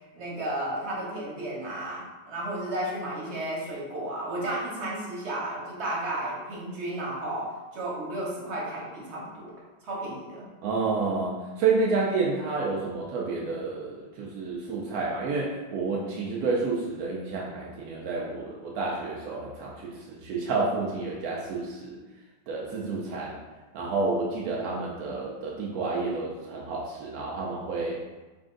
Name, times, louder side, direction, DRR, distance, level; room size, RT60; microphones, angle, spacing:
voice 1, 0.0-9.5 9.8-10.5, right 1 dB, 40° right, -5 dB, 1.1 m, -33 dB
voice 2, 10.6-22.0 22.5-23.4 23.7-28.0, right 3 dB, 80° right, -3 dB, 0.8 m, -30 dB
4.1 x 2.5 x 3.7 m, 1.2 s
omnidirectional pair, 2.1 m